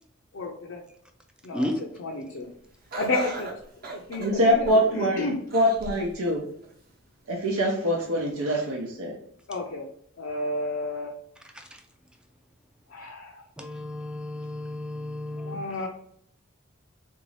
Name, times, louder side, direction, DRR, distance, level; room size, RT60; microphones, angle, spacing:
voice 1, 0.3-0.8 1.4-2.5 3.0-3.5 3.8-5.4 9.5-9.9 10.2-11.1 12.9-13.4 15.4-15.9, left 2 dB, 60° left, -1 dB, 0.5 m, -32 dB
Laughter, 2.9-5.0 5.5-6.1 6.6-6.7 7.7-7.8, right 3 dB, 45° right, 0.8 m, -36 dB
voice 2, 4.2-6.4 7.3-9.2, equal, 90° right, -1 dB, 0.7 m, -24 dB
voice 3, 13.6-15.6, left 1 dB, 5° right, 4 dB, 0.3 m, -32 dB
3.7 x 2.6 x 3.1 m, 0.67 s
head